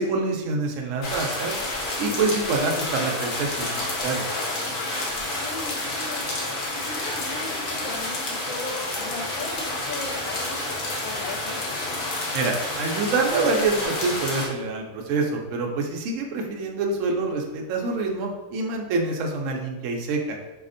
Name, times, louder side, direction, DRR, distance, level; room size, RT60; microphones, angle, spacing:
voice 1, 0.0-1.6 2.0-4.2 12.3-20.4, right 3 dB, 70° right, 1 dB, 0.9 m, -26 dB
sound 1, 1.0-14.5, left 2 dB, 50° left, 0.7 m, -29 dB
voice 2, 5.4-6.2 6.7-11.8, left 3 dB, 80° left, -3 dB, 1.0 m, -37 dB
4.1 x 2.7 x 2.5 m, 1.1 s
omnidirectional pair, 1.4 m